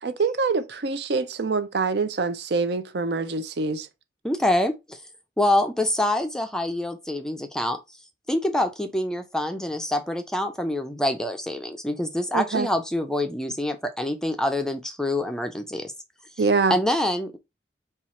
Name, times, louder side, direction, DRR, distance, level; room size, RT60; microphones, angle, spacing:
voice 1, 0.0-3.9 12.3-12.7 16.4-16.8, right 4 dB, 60° right, 0.5 m, -25 dB
voice 2, 4.2-5.0 5.4-7.8 8.3-15.9 16.7-17.4, left 1 dB, 5° left, 0.4 m, -26 dB
4.4 x 2.4 x 4.1 m
head